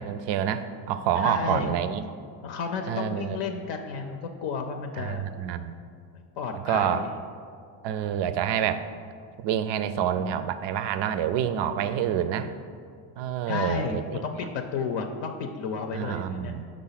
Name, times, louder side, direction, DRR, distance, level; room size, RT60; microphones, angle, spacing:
voice 1, 0.0-2.0 2.9-3.4 5.0-5.7 6.5-7.0 7.8-8.9 9.4-12.5 13.2-14.2 15.9-16.7, right 9 dB, 65° right, 11 dB, 0.5 m, -27 dB
voice 2, 1.2-1.7 2.4-5.3 6.1-7.1 13.5-16.5, left 5 dB, 65° left, 5 dB, 0.6 m, -32 dB
5.0 x 4.0 x 5.7 m, 2.2 s
cardioid pair, 105°, 46 cm